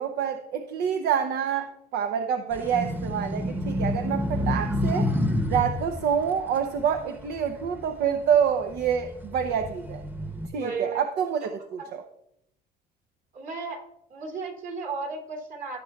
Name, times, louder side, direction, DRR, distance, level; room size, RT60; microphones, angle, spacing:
voice 1, 0.0-5.1 5.5-10.0 10.5-12.0, right 8 dB, 75° right, 5 dB, 0.7 m, -27 dB
sound 1, 2.5-8.1 8.6-10.5, left 1 dB, 10° right, 1.0 m, -29 dB
voice 2, 10.5-11.0 11.4-11.5 11.8-11.9 13.3-13.8 14.1-15.8, right 4 dB, 55° right, 1 dB, 2.7 m, -34 dB
15.5 x 7.7 x 2.4 m, 0.78 s
cardioid pair, 110°, 17 cm